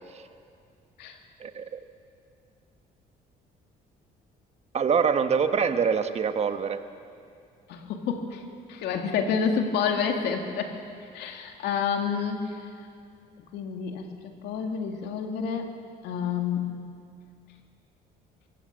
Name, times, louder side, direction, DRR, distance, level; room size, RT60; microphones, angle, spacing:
voice 1, 1.4-1.8 4.7-6.8, right 6 dB, 40° right, 9 dB, 1.2 m, -24 dB
voice 2, 7.7-8.4 8.7-10.7 11.1-12.6 13.5-14.1 14.4-15.7 16.0-16.8, left 6 dB, 80° left, 4 dB, 2.4 m, -28 dB
23.5 x 15.5 x 7.6 m, 2.3 s
cardioid pair, 110°, 17 cm